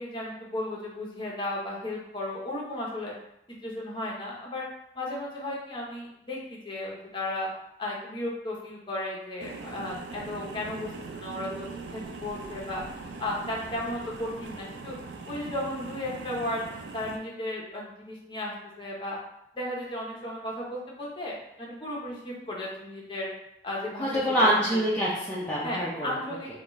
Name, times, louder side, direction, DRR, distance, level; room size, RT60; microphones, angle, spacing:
voice 1, 0.0-3.1 3.5-4.6 4.9-7.5 7.8-11.7 11.9-12.8 13.2-14.9 15.3-16.6 16.9-19.2 19.5-23.3 23.6-24.5 25.6-26.5, left 1 dB, 30° left, -4 dB, 0.9 m, -34 dB
sound 1, 9.4-17.2, right 4 dB, 90° right, 0.4 m, -41 dB
voice 2, 24.0-26.2, equal, 10° left, -9 dB, 0.5 m, -25 dB
3.9 x 2.3 x 3.1 m, 0.80 s
head